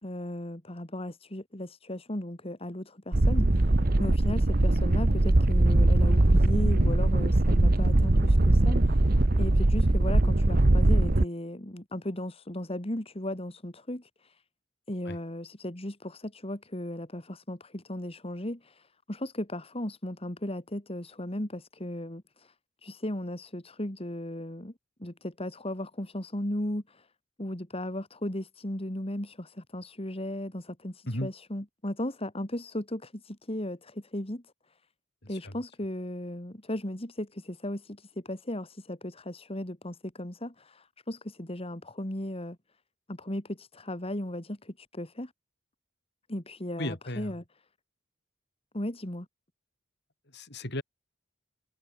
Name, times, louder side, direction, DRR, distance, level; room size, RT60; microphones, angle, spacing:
voice 1, 0.0-9.0 9.3-14.4 14.9-22.5 22.8-24.7 25.0-27.1 27.4-34.4 35.3-42.6 43.1-45.3 46.3-47.4 48.7-49.3, left 1 dB, 30° left, 2.8 m, -36 dB
sound 1, 3.1-11.2, right 2 dB, 50° right, 1.1 m, -21 dB
voice 2, 46.8-47.3 50.3-50.8, left 1 dB, 60° left, 7.4 m, -35 dB
head